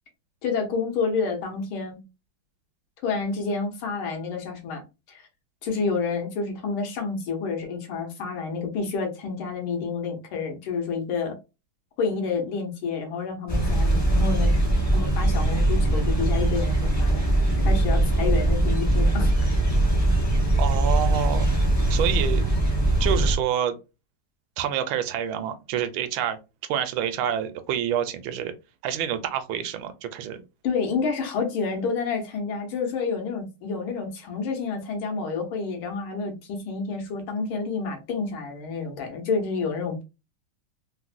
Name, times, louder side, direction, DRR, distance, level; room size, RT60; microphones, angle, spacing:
voice 1, 0.4-2.0 3.0-4.8 5.1-5.2 5.6-11.4 12.0-14.5 14.9-17.2 17.7-19.3 30.6-40.0, left 4 dB, 85° left, 1.7 m, -29 dB
sound 1, 13.5-23.3, right 1 dB, 20° left, 0.4 m, -21 dB
voice 2, 20.6-21.5 21.9-22.4 23.0-23.8 24.6-26.4 26.7-28.5 28.8-30.4, right 9 dB, 75° right, 1.3 m, -27 dB
3.9 x 2.1 x 2.4 m
omnidirectional pair, 2.2 m